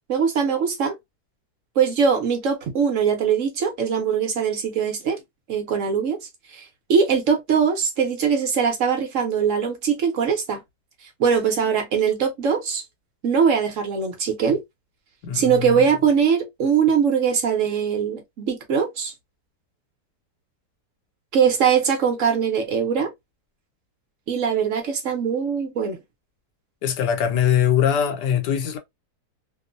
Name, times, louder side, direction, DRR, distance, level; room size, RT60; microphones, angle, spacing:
voice 1, 0.1-0.9 1.8-5.2 5.5-6.2 6.5-10.6 11.2-12.8 13.2-14.6 15.3-19.1 21.3-23.1 24.3-26.0, right 6 dB, 60° right, 0.9 m, -21 dB
voice 2, 15.2-15.8 26.8-28.8, left 9 dB, 90° left, 1.3 m, -22 dB
2.9 x 2.0 x 2.5 m
omnidirectional pair, 1.8 m